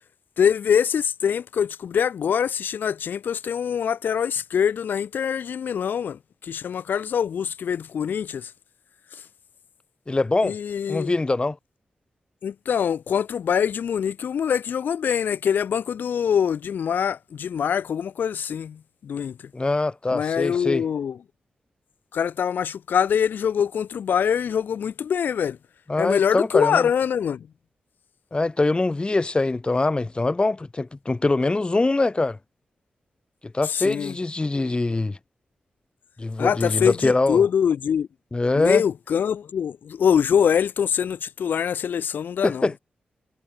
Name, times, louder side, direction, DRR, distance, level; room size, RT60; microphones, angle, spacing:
voice 1, 0.4-8.5 10.4-11.1 12.4-19.3 20.1-21.2 22.1-25.6 26.0-27.4 33.6-34.1 36.4-38.1 38.6-42.7, left 8 dB, 85° left, 3.7 m, -24 dB
voice 2, 10.1-10.6 10.9-11.6 19.5-20.8 25.9-26.9 28.3-32.4 33.4-35.2 36.2-37.4 38.3-38.8 42.4-42.8, left 2 dB, 30° left, 6.5 m, -23 dB
cardioid pair, 65°, 3 cm